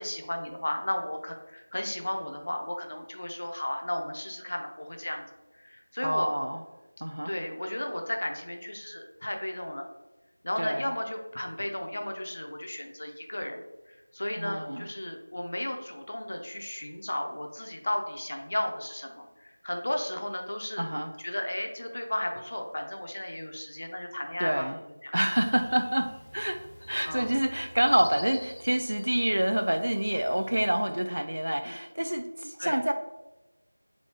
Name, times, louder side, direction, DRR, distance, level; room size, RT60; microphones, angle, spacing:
voice 1, 0.0-5.2 5.5-6.3 7.2-9.9 10.4-13.6 13.9-20.9 21.2-24.7 25.0-25.1 27.1-27.3 31.7-31.8 32.6-32.8, left 1 dB, 30° left, 3 dB, 0.4 m, -34 dB
voice 2, 6.0-6.6 7.0-7.3 10.6-10.9 14.4-14.9 20.8-21.1 24.4-24.8 25.1-32.9, right 1 dB, 70° right, 6 dB, 0.3 m, -27 dB
sound 1, 25.3-30.8, equal, 75° left, 0.9 m, -46 dB
4.1 x 4.0 x 2.9 m, 1.1 s
figure-of-eight pair, 180°, 0 cm